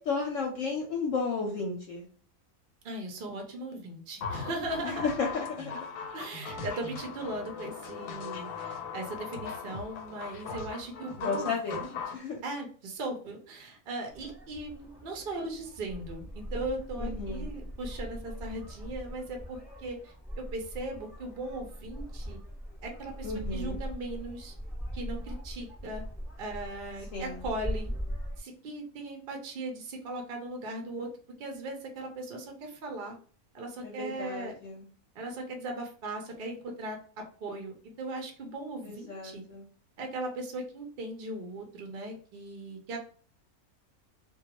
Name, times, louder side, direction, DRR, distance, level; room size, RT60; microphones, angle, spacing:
voice 1, 0.0-2.1 4.8-5.8 11.2-11.8 12.1-12.4 17.0-17.5 23.2-23.8 27.1-27.5 33.8-34.9 38.8-39.6, left 4 dB, 70° left, 0 dB, 0.9 m, -33 dB
voice 2, 2.8-5.1 6.1-11.9 12.4-22.4 22.8-24.5 24.9-26.0 26.4-27.9 28.4-31.1 31.4-33.2 33.5-34.6 35.1-39.4 40.0-43.0, right 2 dB, 65° right, 2 dB, 0.5 m, -38 dB
sound 1, 4.2-12.2, left 5 dB, 90° left, 1.1 m, -39 dB
sound 2, 14.1-28.4, equal, ahead, 0.9 m, -40 dB
2.3 x 2.2 x 2.8 m, 0.43 s
omnidirectional pair, 1.6 m